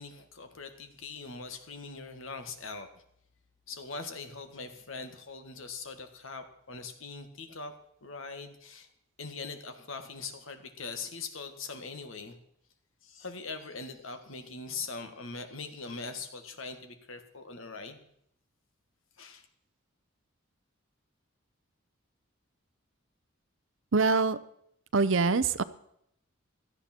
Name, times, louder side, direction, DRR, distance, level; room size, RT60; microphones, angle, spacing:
voice 1, 0.0-2.9 3.7-7.7 8.0-8.9 9.2-12.4 13.0-18.0 19.2-19.5, left 4 dB, 70° left, 7 dB, 1.8 m, -41 dB
voice 2, 23.9-24.4 24.9-25.6, right 4 dB, 65° right, 15 dB, 0.7 m, -24 dB
17.0 x 13.0 x 4.5 m, 0.71 s
head